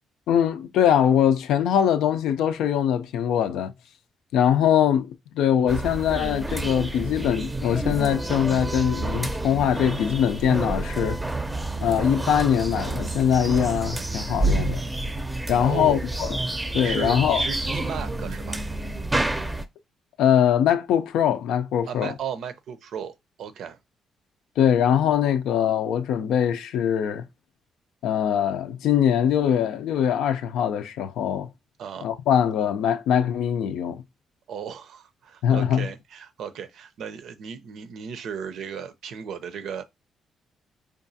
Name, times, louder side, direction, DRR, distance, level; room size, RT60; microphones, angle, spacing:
voice 1, 0.3-3.7 4.3-11.2 11.8-14.8 15.5-16.4 16.7-17.4 20.2-22.1 24.6-27.2 28.0-31.5 32.0-34.0 35.4-35.9, left 9 dB, 85° left, 0.4 m, -22 dB
sound 1, 5.7-19.6, right 2 dB, 15° right, 0.5 m, -29 dB
voice 2, 15.6-16.1 16.8-18.6 21.9-23.8 31.8-32.1 34.5-39.8, right 7 dB, 70° right, 0.6 m, -35 dB
5.0 x 2.3 x 2.6 m
cardioid pair, 90°, 0 cm